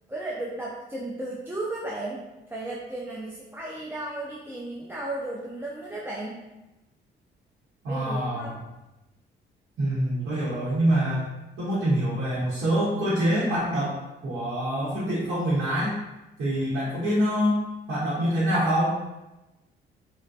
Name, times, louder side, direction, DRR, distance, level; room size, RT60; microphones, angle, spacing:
voice 1, 0.1-6.4 7.9-8.6, right 2 dB, 10° right, -5 dB, 0.4 m, -34 dB
voice 2, 7.8-8.5 9.8-11.2 11.6-13.9 14.2-16.0 16.4-17.6 17.9-19.0, equal, 85° right, -9 dB, 1.0 m, -25 dB
3.3 x 2.2 x 2.6 m, 0.99 s
cardioid pair, 90°, 20 cm